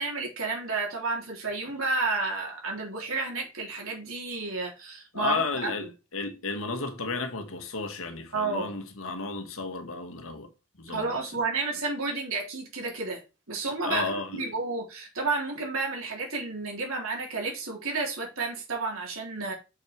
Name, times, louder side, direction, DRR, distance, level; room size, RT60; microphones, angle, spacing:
voice 1, 0.0-5.7 8.3-8.7 10.9-19.5, right 3 dB, 80° right, 3.5 m, -31 dB
voice 2, 5.1-5.9 6.1-10.5 10.8-11.1 13.8-14.5, left 3 dB, 75° left, 1.5 m, -32 dB
6.4 x 6.0 x 4.6 m
head